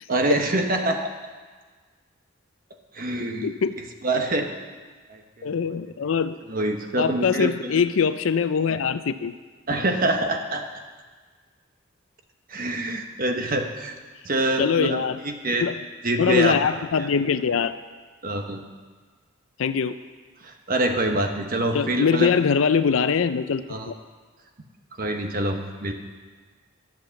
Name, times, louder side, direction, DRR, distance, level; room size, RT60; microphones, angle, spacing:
voice 1, 0.1-1.1 2.9-4.5 5.1-5.7 6.5-7.8 9.7-10.7 12.5-13.9 14.2-15.7 16.0-16.6 17.0-17.1 18.2-18.6 20.4-22.3 23.7-23.9 25.0-25.9, right 1 dB, 45° right, 5 dB, 1.1 m, -26 dB
voice 2, 3.4-3.7 5.4-6.3 7.0-9.3 14.6-15.2 15.6-15.7 16.2-17.8 19.6-20.0 21.7-23.9, left 6 dB, 80° left, 12 dB, 0.4 m, -22 dB
11.5 x 7.6 x 7.0 m, 1.5 s
head